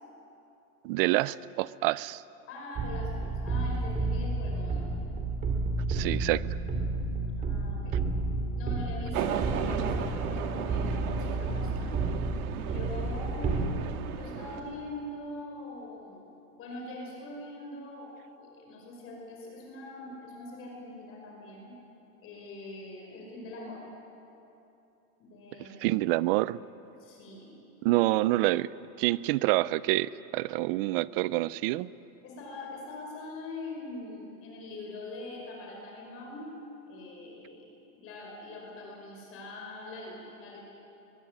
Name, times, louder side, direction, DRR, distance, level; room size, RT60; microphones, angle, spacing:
voice 1, 0.8-2.2 5.9-6.4 25.6-26.6 27.8-28.7 29.0-31.9, right 18 dB, 40° right, 19 dB, 0.5 m, -27 dB
voice 2, 2.5-4.9 7.4-8.0 8.5-12.3 12.5-13.6 14.2-16.3 16.6-21.7 22.2-23.8 25.2-26.0 27.0-27.5 32.2-36.5 36.8-40.6, left 2 dB, 30° left, -1 dB, 5.3 m, -43 dB
sound 1, 2.7-13.7, right 3 dB, 20° right, 2.8 m, -31 dB
sound 2, 9.1-14.6, right 9 dB, 75° right, 1.9 m, -36 dB
22.0 x 21.5 x 8.7 m, 3.0 s
supercardioid pair, 150°, 44 cm